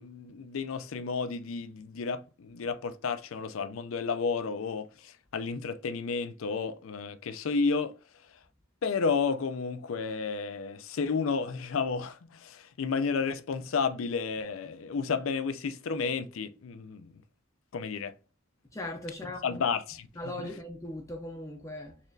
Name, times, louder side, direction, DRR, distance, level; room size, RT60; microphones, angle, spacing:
voice 1, 0.0-8.0 8.8-17.1 17.7-18.1 19.4-20.1, left 5 dB, 80° left, 0.5 m, -32 dB
voice 2, 18.7-19.6 20.2-22.0, left 1 dB, 15° left, 0.5 m, -39 dB
4.2 x 3.0 x 2.6 m
head